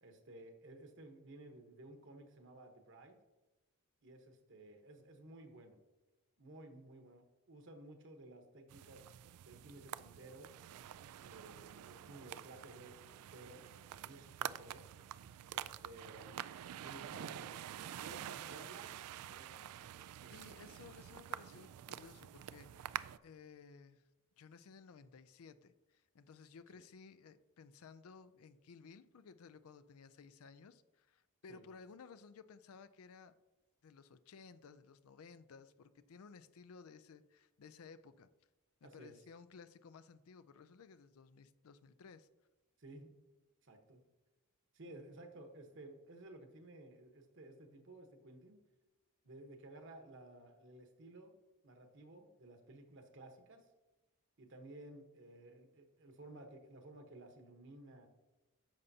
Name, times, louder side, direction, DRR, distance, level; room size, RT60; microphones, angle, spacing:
voice 1, 0.0-3.2 4.0-5.8 6.4-9.0 9.4-10.5 11.0-14.8 15.5-16.4 16.8-17.6 18.0-18.9 19.3-19.7 20.2-20.3 26.7-26.8 31.5-31.6 38.8-39.1 42.8-43.1 43.6-44.0 44.7-48.6 49.2-51.3 51.6-53.7 54.4-58.1, right 2 dB, 55° right, 4 dB, 1.1 m, -55 dB
sound 1, 8.7-23.2, right 11 dB, 80° right, 0.3 m, -47 dB
voice 2, 20.3-23.0 23.2-24.0 24.4-33.4 33.8-38.3 38.8-42.3, left 5 dB, 70° left, 13 dB, 0.4 m, -57 dB
10.5 x 6.9 x 2.8 m, 1.1 s
head